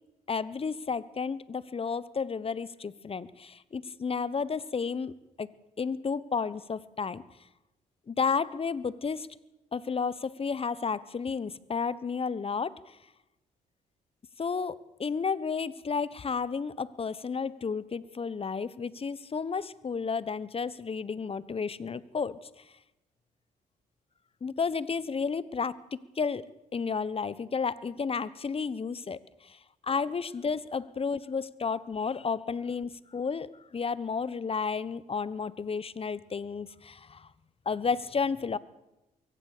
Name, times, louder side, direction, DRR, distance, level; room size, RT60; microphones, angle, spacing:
voice 1, 0.3-5.5 5.8-7.2 8.1-9.3 9.7-13.0 14.4-22.5 24.4-25.8 26.2-37.3 37.6-38.6, left 5 dB, 35° left, 19 dB, 1.1 m, -32 dB
23.0 x 16.5 x 6.8 m, 0.96 s
supercardioid pair, 55°, 16 cm